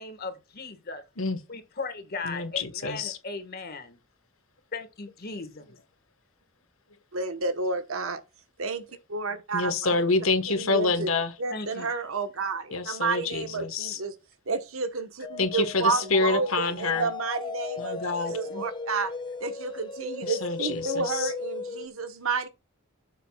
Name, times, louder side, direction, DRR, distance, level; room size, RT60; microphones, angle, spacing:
voice 1, 0.0-1.0 1.5-4.0 4.7-5.6 11.5-11.9 18.5-18.7, left 3 dB, 50° left, 1.6 m, -37 dB
voice 2, 2.2-3.2 9.5-11.3 12.7-14.0 15.4-17.1 17.8-18.4 20.2-21.3, left 3 dB, 75° left, 1.3 m, -27 dB
voice 3, 7.1-8.2 8.6-9.7 10.5-11.1 11.4-14.1 14.5-19.1 19.4-22.5, right 4 dB, 80° right, 1.2 m, -30 dB
sound 1, 15.2-21.9, left 3 dB, 20° left, 0.6 m, -38 dB
12.0 x 6.7 x 2.4 m
head